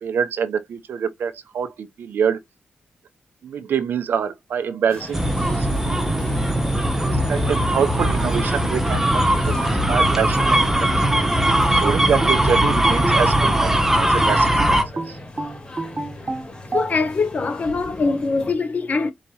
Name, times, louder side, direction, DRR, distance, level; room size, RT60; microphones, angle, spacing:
voice 1, 0.0-2.4 3.4-5.2 5.5-6.0 7.1-11.2 11.6-14.5 14.9-15.2, right 7 dB, 80° right, 0.7 m, -26 dB
sound 1, 4.9-18.5, left 2 dB, 25° left, 2.1 m, -38 dB
sound 2, 5.1-14.8, right 1 dB, 10° right, 1.0 m, -19 dB
sound 3, 11.1-13.7 14.2-16.9, right 2 dB, 35° right, 1.0 m, -29 dB
voice 2, 16.7-19.1, left 4 dB, 50° left, 0.9 m, -22 dB
4.7 x 3.0 x 2.8 m
cardioid pair, 75°, 3 cm